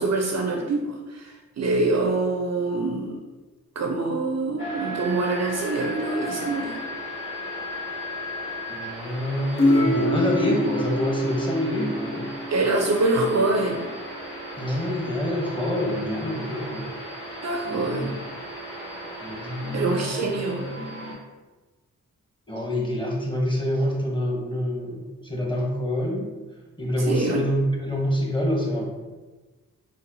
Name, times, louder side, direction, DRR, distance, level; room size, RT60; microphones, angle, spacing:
voice 1, 0.0-3.2 3.8-6.8 12.5-13.9 17.4-18.1 19.7-20.7 27.0-27.5, right 2 dB, 50° right, 2 dB, 0.5 m, -25 dB
sound 1, 4.6-21.1, equal, 35° left, 1.5 m, -36 dB
voice 2, 8.7-12.3 14.6-16.9 17.2-17.3 17.7-18.0 19.2-20.2 22.5-26.3 26.8-28.8, left 1 dB, 15° left, -2 dB, 1.0 m, -26 dB
sound 2, 9.6-13.2 15.8-16.2, left 1 dB, 60° left, 1.0 m, -26 dB
4.0 x 2.0 x 2.7 m, 1.2 s
supercardioid pair, 40°, 35 cm